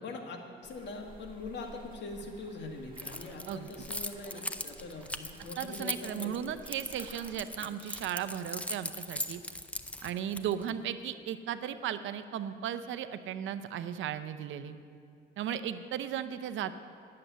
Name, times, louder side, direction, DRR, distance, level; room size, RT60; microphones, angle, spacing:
voice 1, 0.0-6.5 7.6-7.7 10.6-10.7, left 3 dB, 65° left, 2 dB, 1.7 m, -43 dB
sound 1, 0.6-7.5, right 3 dB, 25° right, 1.7 m, -54 dB
Keys jangling, 3.0-10.7, left 1 dB, 5° left, 0.5 m, -39 dB
voice 2, 5.6-9.4 10.0-14.8 15.4-16.7, right 9 dB, 75° right, 11 dB, 0.6 m, -36 dB
10.5 x 7.6 x 7.9 m, 2.4 s
cardioid pair, 90°, 20 cm